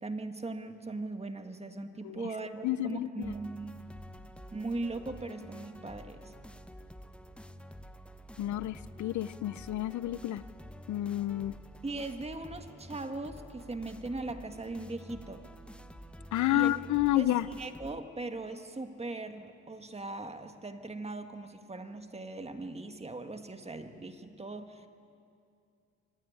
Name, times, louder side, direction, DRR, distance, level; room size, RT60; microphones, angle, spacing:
voice 1, 0.0-3.8 4.5-6.3 11.8-15.4 16.5-16.8 17.2-24.9, right 2 dB, 20° right, 7 dB, 1.8 m, -39 dB
voice 2, 2.6-3.3 8.4-10.4 10.9-11.5 16.3-17.5, left 14 dB, 70° left, 16 dB, 0.6 m, -30 dB
sound 1, 3.2-18.0, equal, 5° left, 0.9 m, -49 dB
24.5 x 17.0 x 9.5 m, 2.5 s
cardioid pair, 90°, 30 cm